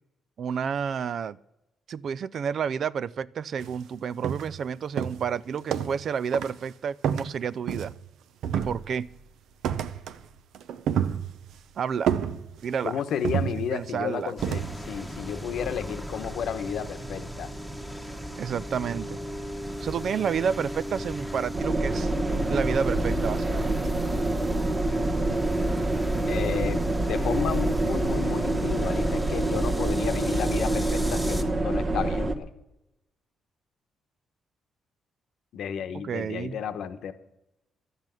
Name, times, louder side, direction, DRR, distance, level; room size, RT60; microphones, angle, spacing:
voice 1, 0.4-1.4 1.9-7.9 8.5-9.1 11.8-12.1 12.6-13.0 13.7-14.3 18.4-19.2 19.8-22.1 22.5-23.8 35.9-36.6, right 7 dB, 50° right, 0.4 m, -30 dB
sound 1, 3.6-3.8 4.2-4.6 5.0-6.1 6.3-6.6 7.0-8.1 8.4-9.1 9.6-10.2 10.5-11.6 12.1-12.8 13.2-14.0 14.4-14.8, right 8 dB, 80° right, 0.7 m, -29 dB
voice 2, 12.8-17.5 26.3-32.5 35.5-37.1, left 8 dB, 70° left, 1.0 m, -32 dB
sound 2, 14.4-31.4, equal, 5° right, 1.3 m, -36 dB
sound 3, 21.5-32.4, right 2 dB, 35° right, 1.1 m, -26 dB
12.0 x 8.2 x 9.0 m
cardioid pair, 135°, 0 cm